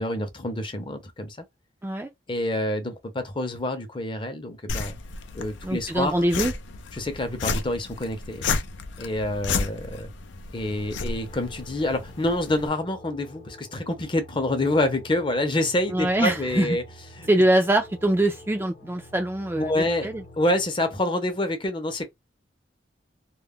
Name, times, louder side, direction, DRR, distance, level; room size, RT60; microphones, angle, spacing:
voice 1, 0.0-1.4 2.3-5.0 5.3-6.3 6.9-8.5 9.0-10.1 10.5-16.8 17.1-17.3 19.5-20.1 20.4-22.1, left 1 dB, 30° left, 0.6 m, -27 dB
sound 1, 4.7-12.7, left 4 dB, 90° left, 0.4 m, -32 dB
voice 2, 5.6-6.5 15.9-16.7 17.3-20.2, right 1 dB, 15° right, 0.3 m, -23 dB
sound 2, 10.5-20.6, equal, 50° left, 0.9 m, -47 dB
2.3 x 2.0 x 3.4 m
head